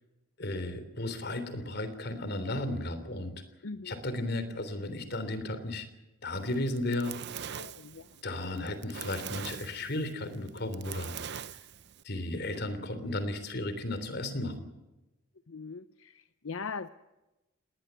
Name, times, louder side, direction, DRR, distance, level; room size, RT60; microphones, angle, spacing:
voice 1, 0.4-3.4 3.8-5.9 6.2-7.1 8.2-11.6 12.0-14.7, left 1 dB, 50° left, 11 dB, 3.4 m, -34 dB
voice 2, 3.6-3.9 7.5-8.2 15.5-16.9, left 4 dB, 75° left, 12 dB, 0.7 m, -41 dB
Fire, 6.5-12.0, right 8 dB, 55° right, 0.7 m, -42 dB
19.5 x 19.5 x 9.1 m, 1.0 s
head